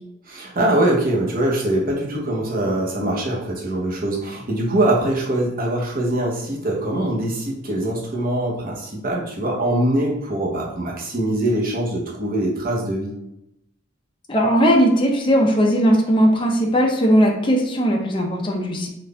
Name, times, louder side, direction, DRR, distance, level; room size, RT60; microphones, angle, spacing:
voice 1, 0.3-13.2, right 1 dB, 45° right, -3 dB, 1.0 m, -23 dB
voice 2, 14.3-18.9, equal, 25° left, 0 dB, 0.6 m, -18 dB
4.0 x 2.5 x 3.3 m, 0.83 s
head